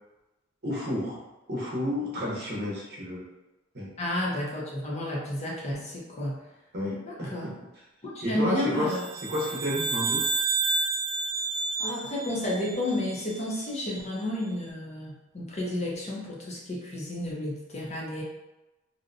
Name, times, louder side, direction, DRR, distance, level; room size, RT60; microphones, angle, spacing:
voice 1, 0.6-1.2 1.5-3.2 3.7-3.9 6.7-7.5 8.2-8.9 9.2-10.2, left 1 dB, 55° right, -4 dB, 0.7 m, -31 dB
voice 2, 4.0-6.4 7.1-7.5 8.0-9.0 11.8-18.2, left 1 dB, 35° left, -4 dB, 0.6 m, -31 dB
sound 1, 8.9-13.4, right 4 dB, 25° right, 0.3 m, -30 dB
2.7 x 2.1 x 2.5 m, 1.0 s
head